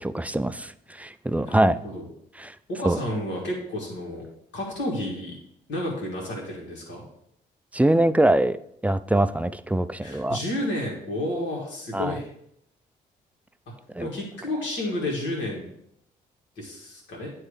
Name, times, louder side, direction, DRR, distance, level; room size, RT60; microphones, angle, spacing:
voice 1, 0.0-1.8 2.4-2.5 2.8-3.0 7.7-8.6 8.8-10.4 11.9-12.2 14.0-14.1, right 1 dB, 5° right, 12 dB, 0.3 m, -23 dB
voice 2, 1.5-2.1 2.7-4.2 4.5-5.4 5.7-7.0 10.0-12.3 14.0-15.7 16.6-17.3, left 1 dB, 70° left, -2 dB, 2.0 m, -31 dB
9.6 x 3.2 x 3.2 m, 0.74 s
hypercardioid pair, 50°, 20 cm